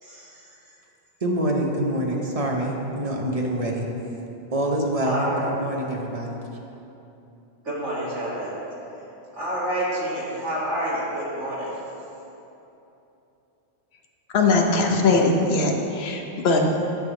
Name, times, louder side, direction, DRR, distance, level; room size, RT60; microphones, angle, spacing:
voice 1, 0.0-0.5 5.0-5.5 7.6-8.5 9.3-11.7, right 1 dB, 75° right, -8 dB, 2.4 m, -28 dB
voice 2, 1.2-3.9 4.5-5.2 5.5-6.4, right 1 dB, 35° right, 0 dB, 0.8 m, -25 dB
voice 3, 14.3-16.6, left 3 dB, 60° left, 2 dB, 1.0 m, -20 dB
10.0 x 3.5 x 7.1 m, 2.9 s
omnidirectional pair, 1.2 m